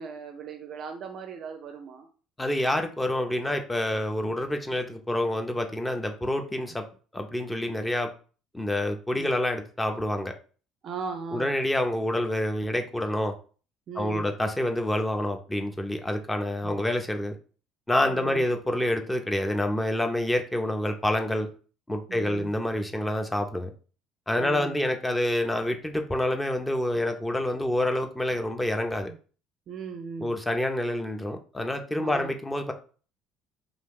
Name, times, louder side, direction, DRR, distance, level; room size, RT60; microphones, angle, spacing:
voice 1, 0.0-2.1 9.1-9.4 10.8-11.6 13.9-14.3 16.6-16.8 18.1-18.5 22.1-22.6 24.4-25.0 29.1-29.2 29.7-30.4 32.0-32.4, right 5 dB, 50° right, 5 dB, 0.4 m, -38 dB
voice 2, 2.4-6.8 7.1-8.1 8.5-10.3 11.3-13.3 14.0-17.3 17.9-21.5 21.9-23.7 24.3-29.1 30.2-32.7, left 1 dB, 10° left, 5 dB, 0.6 m, -27 dB
2.6 x 2.4 x 3.6 m, 0.39 s
hypercardioid pair, 55°, 0 cm